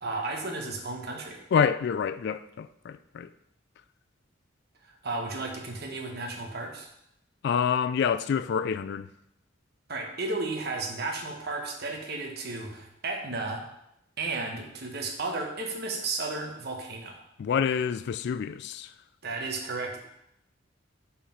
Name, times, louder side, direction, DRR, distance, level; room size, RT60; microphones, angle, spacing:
voice 1, 0.0-1.4 4.8-6.9 9.9-13.6 14.2-17.2 19.2-20.0, right 3 dB, 55° right, 1.2 m, -33 dB
voice 2, 1.5-3.3 7.4-9.1 17.4-18.9, left 7 dB, 55° left, 0.3 m, -27 dB
5.6 x 4.9 x 5.7 m
head